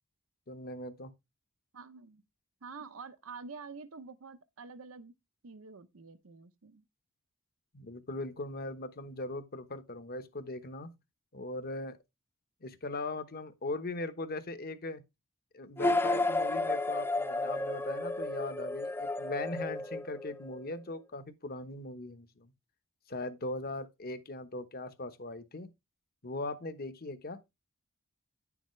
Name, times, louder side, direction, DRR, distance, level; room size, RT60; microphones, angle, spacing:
voice 1, 0.5-1.1 7.7-10.9 11.3-12.0 12.6-15.0 15.5-22.5 23.1-25.7 26.2-27.4, left 2 dB, 45° left, 1.1 m, -39 dB
voice 2, 1.7-2.2 2.6-5.1 5.4-6.8, right 4 dB, 75° right, 0.8 m, -47 dB
sound 1, 15.8-20.6, left 2 dB, 10° left, 0.4 m, -32 dB
10.5 x 7.1 x 3.2 m
head